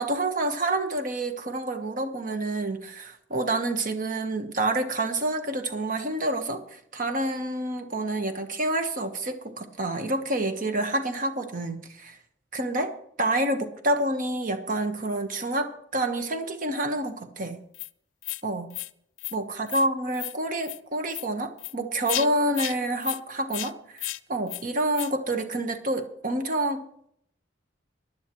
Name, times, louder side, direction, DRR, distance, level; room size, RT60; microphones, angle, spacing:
voice 1, 0.0-12.2 12.5-17.6 18.4-18.8 19.3-26.8, right 1 dB, 45° right, 7 dB, 1.2 m, -28 dB
sound 1, 17.7-17.9 18.2-18.4 18.7-18.9 19.2-19.4 19.7-19.9 20.1-20.4 20.6-20.8 21.1-21.3 21.6-21.7 22.1-22.3 22.5-22.8 23.0-23.2 23.5-23.7 24.0-24.2 24.5-24.6 24.9-25.1, left 16 dB, 85° left, 0.5 m, -33 dB
19.0 x 11.5 x 3.1 m, 0.70 s
head